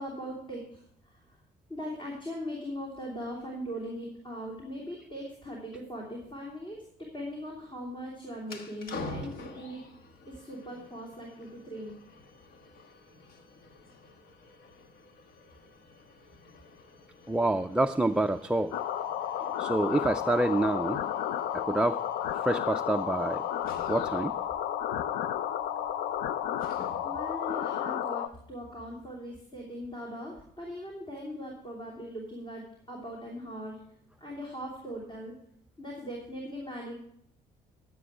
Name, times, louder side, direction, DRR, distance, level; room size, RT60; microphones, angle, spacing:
voice 1, 0.0-1.4 1.7-6.8 7.1-9.8 10.3-11.9 27.0-33.8 34.2-35.3 35.8-36.9, equal, 30° left, -2 dB, 3.1 m, -40 dB
sound 1, 8.4-27.3, left 3 dB, 60° left, 1.4 m, -48 dB
voice 2, 17.3-18.8 19.4-21.0 21.5-22.0 22.3-23.4 23.9-24.4, right 2 dB, 5° right, 6 dB, 0.3 m, -27 dB
sound 2, 18.7-28.3, left 10 dB, 85° left, 0.5 m, -32 dB
12.5 x 7.8 x 4.8 m, 0.69 s
cardioid pair, 110°, 17 cm